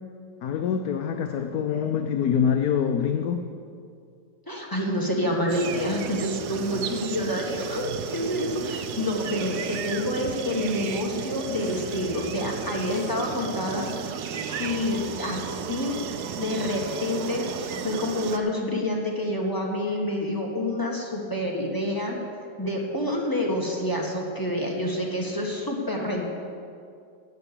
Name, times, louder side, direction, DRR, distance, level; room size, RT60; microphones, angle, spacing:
voice 1, 0.4-3.4 22.6-22.7, left 7 dB, 65° left, 5 dB, 1.1 m, -25 dB
voice 2, 4.5-13.9 14.6-16.0 16.4-22.2 22.6-26.3, left 1 dB, 10° left, -1 dB, 1.4 m, -28 dB
sound 1, 5.5-18.4, right 7 dB, 65° right, 1.2 m, -33 dB
12.0 x 8.0 x 8.3 m, 2.4 s
omnidirectional pair, 2.0 m